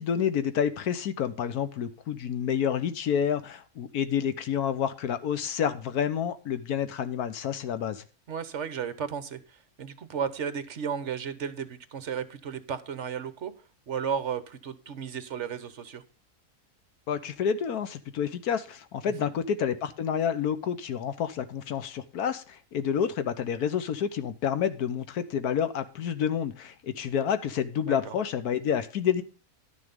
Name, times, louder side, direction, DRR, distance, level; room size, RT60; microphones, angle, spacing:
voice 1, 0.0-8.0 17.1-29.2, left 8 dB, 85° left, 12 dB, 1.4 m, -29 dB
voice 2, 8.3-13.5 13.9-16.0 19.2-19.3 27.9-28.2, right 7 dB, 55° right, 13 dB, 1.2 m, -34 dB
12.0 x 6.5 x 5.2 m, 0.35 s
omnidirectional pair, 1.6 m